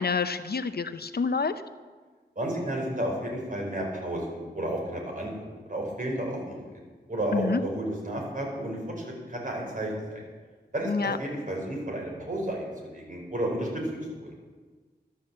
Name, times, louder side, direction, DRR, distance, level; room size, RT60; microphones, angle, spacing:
voice 1, 0.0-1.6 7.3-7.6 10.8-11.2, left 5 dB, 65° left, 11 dB, 0.6 m, -27 dB
voice 2, 2.4-5.3 5.7-6.8 7.1-10.2 10.7-13.8 14.2-14.3, right 1 dB, 50° right, -1 dB, 4.7 m, -32 dB
12.5 x 10.5 x 7.5 m, 1.4 s
wide cardioid pair, 85°, 18 cm